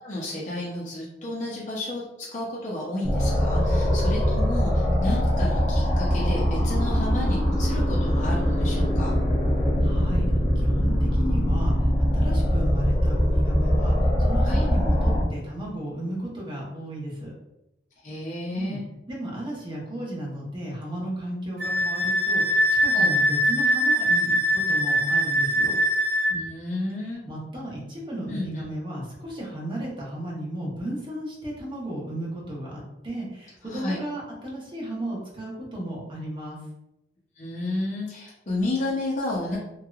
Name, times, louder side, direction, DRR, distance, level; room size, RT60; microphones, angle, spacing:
voice 1, 0.0-2.0 2.3-9.1 14.4-14.6 18.0-18.8 22.9-23.1 26.3-27.2 28.3-28.7 33.7-34.0 37.4-39.6, left 2 dB, 45° left, -5 dB, 0.6 m, -31 dB
sound 1, 3.0-15.2, equal, 5° left, 0.8 m, -22 dB
voice 2, 9.8-10.3 10.5-17.3 18.5-18.8 19.1-25.8 27.2-36.6, right 1 dB, 30° right, -4 dB, 1.0 m, -34 dB
Wind instrument woodwind instrument, 21.6-26.4, equal, 60° right, 1.0 m, -22 dB
3.1 x 2.7 x 2.4 m, 0.88 s
head